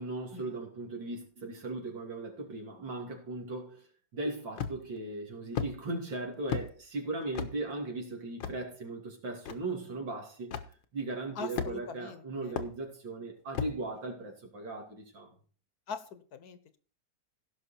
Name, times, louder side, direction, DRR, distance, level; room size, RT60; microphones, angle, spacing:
voice 1, 0.0-3.9 4.1-10.6 10.9-15.3, right 2 dB, 85° right, 3.5 m, -38 dB
sound 1, 4.6-5.0 5.6-5.7 6.5-6.7 7.3-7.5 8.4-8.6 9.5-9.6 10.5-10.7 11.6-12.0 12.6-12.7 13.5-13.8, left 8 dB, 85° left, 1.8 m, -34 dB
voice 2, 11.4-12.6 15.9-16.8, left 6 dB, 60° left, 1.4 m, -43 dB
16.5 x 6.2 x 4.3 m
omnidirectional pair, 2.0 m